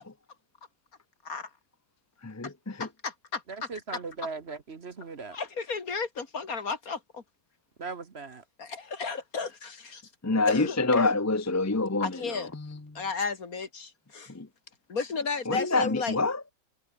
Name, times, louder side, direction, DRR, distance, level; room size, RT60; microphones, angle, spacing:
voice 1, 2.2-2.9 10.2-13.0 14.3-14.5 15.5-16.4, left 3 dB, 20° left, 0.5 m, -27 dB
voice 2, 2.8-4.0 5.3-7.2 8.6-10.0 10.5-11.1 12.0-12.5 12.9-14.3 14.9-16.2, left 5 dB, 65° left, 2.7 m, -33 dB
voice 3, 3.5-5.4 7.8-8.4, right 4 dB, 45° right, 1.5 m, -38 dB
omnidirectional pair, 1.6 m